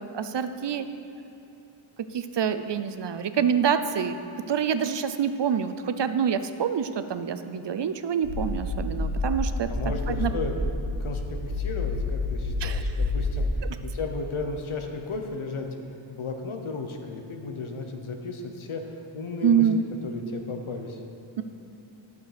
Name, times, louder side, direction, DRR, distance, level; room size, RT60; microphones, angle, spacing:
voice 1, 0.1-0.8 2.1-4.2 4.5-9.7 10.1-10.3 12.6-12.8 13.6-13.8 19.4-19.8 21.4-21.5, right 7 dB, 60° right, 10 dB, 0.6 m, -26 dB
sound 1, 8.2-13.4, left 2 dB, 35° left, 1.1 m, -29 dB
voice 2, 9.7-10.5 11.0-15.7 16.1-19.7 20.0-21.0, left 3 dB, 75° left, 4 dB, 1.1 m, -34 dB
11.5 x 6.7 x 5.0 m, 2.9 s
wide cardioid pair, 105°, 50 cm